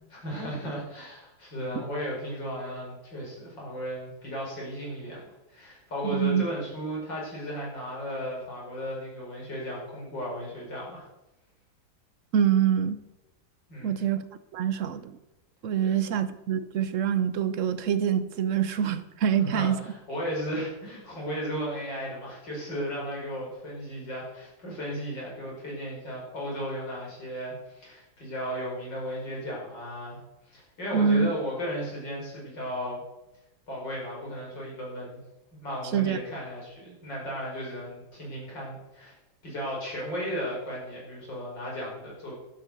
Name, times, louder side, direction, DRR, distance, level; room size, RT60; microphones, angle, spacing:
voice 1, 0.2-11.1 13.7-14.0 15.8-15.9 19.4-30.2 30.5-33.0 33.7-35.2 35.6-39.2 39.4-42.3, equal, 65° left, -4 dB, 5.7 m, -35 dB
voice 2, 6.0-6.4 12.3-13.0 13.8-14.2 14.5-15.2 15.6-19.8 30.9-31.3 35.9-36.2, right 8 dB, 60° right, 12 dB, 0.8 m, -25 dB
11.5 x 9.4 x 6.7 m, 0.93 s
omnidirectional pair, 2.1 m